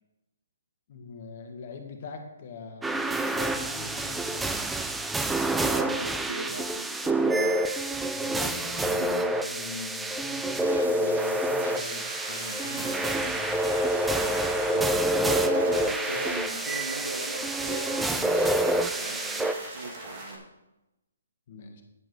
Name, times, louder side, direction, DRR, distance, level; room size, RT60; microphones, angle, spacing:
voice 1, 0.9-4.8 5.8-6.0 8.1-13.5 21.5-21.8, left 4 dB, 50° left, 4 dB, 1.9 m, -42 dB
sound 1, 2.8-19.5, right 1 dB, 5° right, 0.5 m, -27 dB
voice 2, 5.6-7.7 14.6-20.5, right 2 dB, 90° right, 8 dB, 1.1 m, -38 dB
sound 2, 10.5-20.4, right 2 dB, 25° right, 2.6 m, -40 dB
10.0 x 7.6 x 4.8 m, 0.94 s
hypercardioid pair, 140°, 0 cm